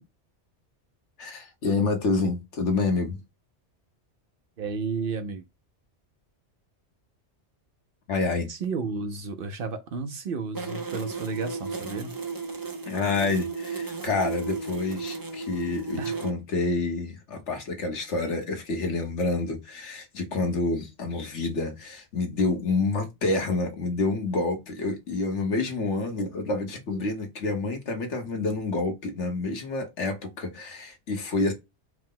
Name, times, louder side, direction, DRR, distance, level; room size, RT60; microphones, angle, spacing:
voice 1, 1.2-3.2 8.1-8.5 12.9-31.5, left 3 dB, 80° left, 1.3 m, -28 dB
voice 2, 4.6-5.4 8.5-12.2 16.0-16.2, right 5 dB, 60° right, 0.7 m, -32 dB
sound 1, 10.5-16.3, right 4 dB, 30° right, 0.4 m, -34 dB
4.7 x 2.1 x 3.7 m
omnidirectional pair, 1.2 m